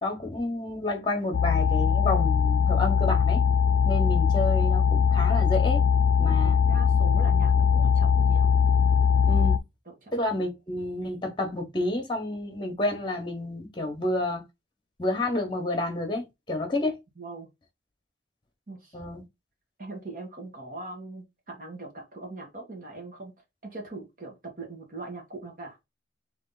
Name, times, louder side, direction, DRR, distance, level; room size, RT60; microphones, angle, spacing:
voice 1, 0.0-3.4 3.8-5.8 6.2-6.6 9.3-9.6 10.1-14.4 15.0-16.9 18.9-19.2, left 2 dB, 25° left, 1.3 m, -29 dB
sound 1, 1.3-9.6, left 6 dB, 75° left, 0.4 m, -21 dB
voice 2, 6.2-8.5 10.0-10.1 17.2-17.5 18.7-18.9 19.8-23.3 23.6-25.8, right 2 dB, 45° right, 1.6 m, -41 dB
3.6 x 3.4 x 4.0 m
head